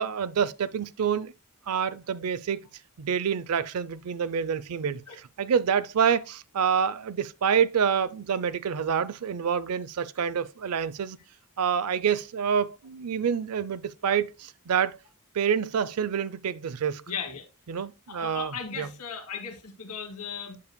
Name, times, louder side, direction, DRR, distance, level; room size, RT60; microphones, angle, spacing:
voice 1, 0.0-1.3 1.7-2.6 3.0-11.2 11.6-15.0 15.3-17.0 17.7-18.9, right 7 dB, 80° right, 0.5 m, -27 dB
voice 2, 17.1-17.4 18.1-20.6, left 6 dB, 85° left, 1.5 m, -37 dB
8.4 x 6.7 x 2.2 m
head